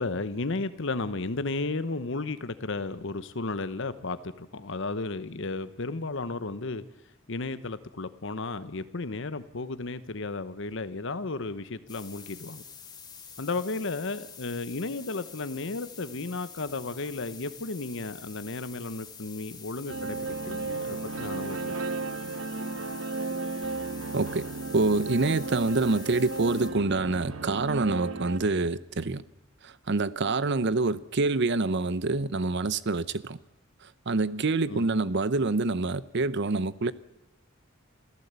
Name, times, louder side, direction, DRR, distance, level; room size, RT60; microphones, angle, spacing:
voice 1, 0.0-6.8 7.3-12.6 13.4-22.0 34.7-35.0, left 3 dB, 65° left, 1.0 m, -34 dB
sound 1, 11.9-26.7, left 6 dB, 20° left, 2.9 m, -47 dB
sound 2, 19.9-28.4, right 3 dB, 90° right, 1.4 m, -34 dB
voice 2, 24.1-24.5 24.7-29.2 29.6-33.4 34.1-36.9, right 3 dB, 60° right, 0.8 m, -26 dB
27.5 x 15.5 x 8.2 m
head